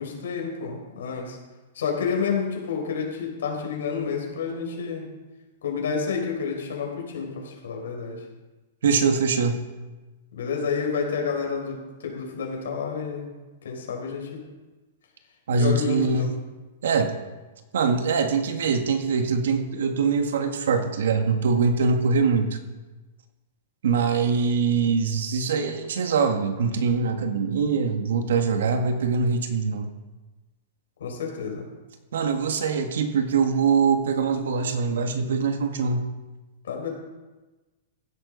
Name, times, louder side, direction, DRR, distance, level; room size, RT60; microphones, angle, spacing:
voice 1, 0.0-1.4 1.7-5.1 5.6-8.2 10.3-13.2 13.6-14.4 15.6-16.3 31.0-31.7 36.6-36.9, left 5 dB, 90° left, 0 dB, 4.7 m, -29 dB
voice 2, 8.8-9.7 15.5-16.3 16.8-17.2 17.7-22.6 23.8-29.9 32.1-36.1, right 5 dB, 75° right, 6 dB, 1.7 m, -23 dB
15.5 x 11.0 x 4.1 m, 1.2 s
supercardioid pair, 175°, 0 cm